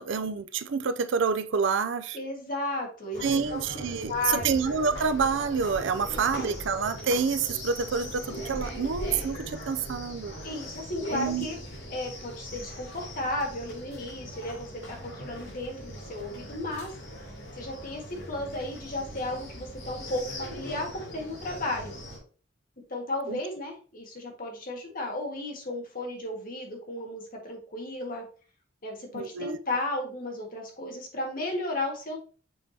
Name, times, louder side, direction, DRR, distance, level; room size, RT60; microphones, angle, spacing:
voice 1, 0.0-2.2 3.2-10.3 11.1-11.5 23.3-23.4 29.1-29.6, right 5 dB, 70° right, 0.5 m, -28 dB
voice 2, 2.1-3.7 4.1-4.6 6.1-6.5 10.4-11.6 11.9-16.9 17.6-21.9 22.9-28.3 28.8-32.2, left 2 dB, 50° left, 1.8 m, -34 dB
sound 1, 3.1-22.2, equal, 80° left, 3.4 m, -40 dB
7.1 x 4.6 x 2.8 m
head